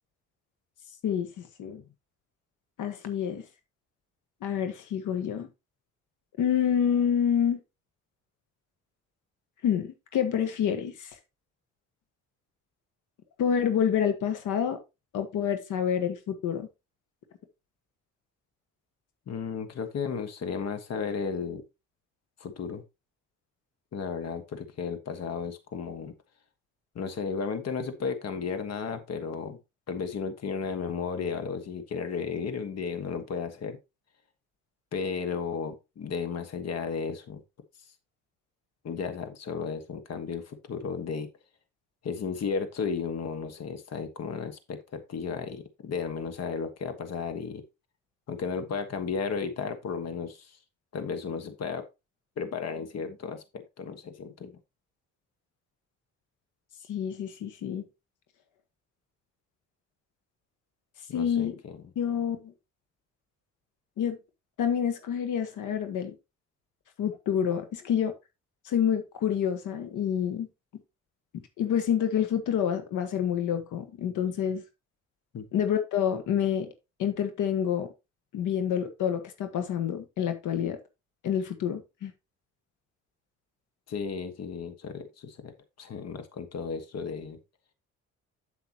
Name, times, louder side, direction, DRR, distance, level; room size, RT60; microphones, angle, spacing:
voice 1, 1.0-1.8 2.8-3.4 4.4-5.5 6.4-7.6 9.6-11.1 13.4-14.8 15.1-16.7 56.9-57.9 61.1-61.5 61.9-62.5 64.0-64.2 64.6-66.1 67.0-68.1 68.6-70.5 71.6-74.6 75.5-76.7 77.0-77.9 78.3-80.8 81.2-82.1, left 8 dB, 85° left, 8 dB, 1.4 m, -28 dB
voice 2, 19.3-21.6 22.4-22.8 23.9-26.1 26.9-29.6 29.9-33.8 34.9-37.4 38.8-41.3 42.0-47.6 48.3-50.6 50.9-51.8 52.4-54.6 61.1-61.8 75.3-75.5 83.9-85.5 85.8-87.4, left 5 dB, 55° left, 9 dB, 1.5 m, -34 dB
8.1 x 8.0 x 2.9 m, 0.25 s
cardioid pair, 90°, 30 cm